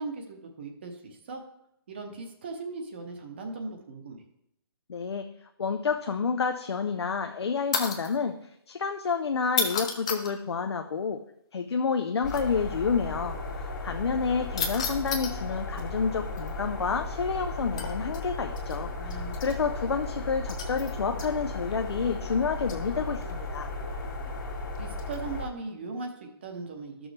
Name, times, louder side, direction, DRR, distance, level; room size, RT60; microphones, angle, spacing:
voice 1, 0.0-1.4 1.9-4.2 18.9-19.3 24.8-27.1, right 3 dB, 25° right, 4 dB, 0.8 m, -38 dB
voice 2, 4.9-5.3 5.6-11.2 11.5-23.7, left 5 dB, 85° left, 5 dB, 0.6 m, -29 dB
sound 1, 7.7-8.2 9.5-10.3 12.3-12.4 14.6-15.4 17.8-18.2 20.6-20.8 21.7-22.0, left 5 dB, 15° left, 0.4 m, -30 dB
sound 2, 12.2-25.5, left 2 dB, 50° left, 1.9 m, -35 dB
12.5 x 6.2 x 3.3 m, 0.77 s
hypercardioid pair, 175°, 13 cm